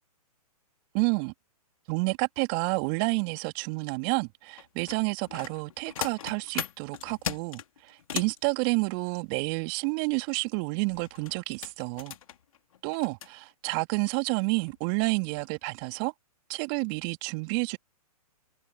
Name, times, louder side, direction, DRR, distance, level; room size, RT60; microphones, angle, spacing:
voice 1, 0.9-1.3 1.9-12.1 12.8-16.1 16.5-17.8, right 34 dB, 35° right, 3.0 m, -29 dB
sound 1, 4.6-8.4 10.9-13.3 14.0-14.1 14.6-14.8 15.2-15.5 15.8-15.9, left 10 dB, 60° left, 3.5 m, -38 dB
figure-of-eight pair, 120°, 20 cm